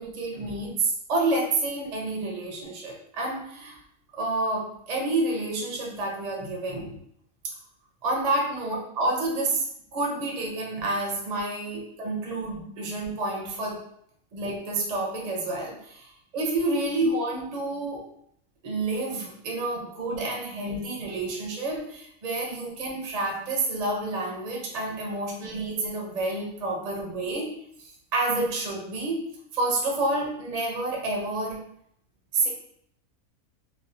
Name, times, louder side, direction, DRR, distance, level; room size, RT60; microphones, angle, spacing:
voice 1, 0.0-3.8 4.1-7.0 7.4-7.5 8.0-13.8 14.3-18.0 18.6-29.2 29.5-31.6 32.3-32.5, right 2 dB, 45° right, -2 dB, 0.5 m, -29 dB
3.3 x 2.4 x 2.6 m, 0.69 s
omnidirectional pair, 1.6 m